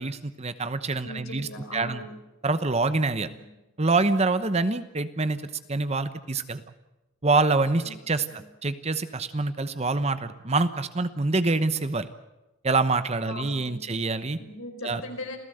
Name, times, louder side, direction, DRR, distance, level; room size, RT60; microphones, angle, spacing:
voice 1, 0.0-2.0 2.4-3.3 3.8-6.6 7.2-12.1 12.6-14.4 14.8-15.0, right 3 dB, 30° right, 12 dB, 1.0 m, -26 dB
voice 2, 1.0-2.1 3.2-3.6 7.8-7.9 8.3-8.4 13.2-14.0 14.4-15.4, left 2 dB, 70° left, 4 dB, 4.9 m, -39 dB
27.5 x 16.5 x 7.9 m, 0.99 s
head